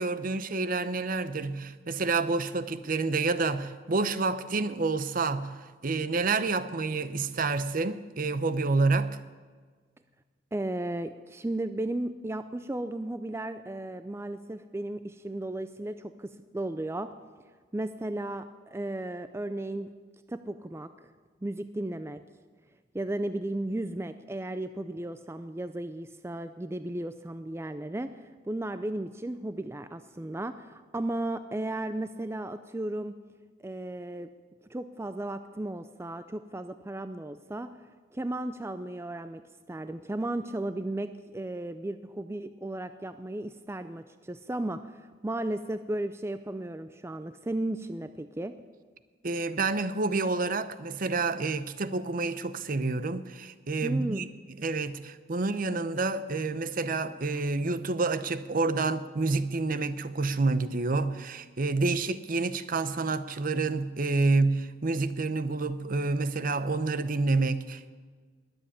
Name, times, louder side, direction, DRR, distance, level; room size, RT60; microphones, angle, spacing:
voice 1, 0.0-9.2 49.2-54.3 54.6-67.9, right 3 dB, 50° right, 0.8 m, -28 dB
voice 2, 10.5-17.1 17.7-19.9 20.3-20.9 21.4-22.2 22.9-33.2 33.6-34.3 34.7-37.7 38.1-39.4 39.7-48.6 53.8-54.3, right 1 dB, 15° right, 0.4 m, -35 dB
21.0 x 8.0 x 8.5 m
head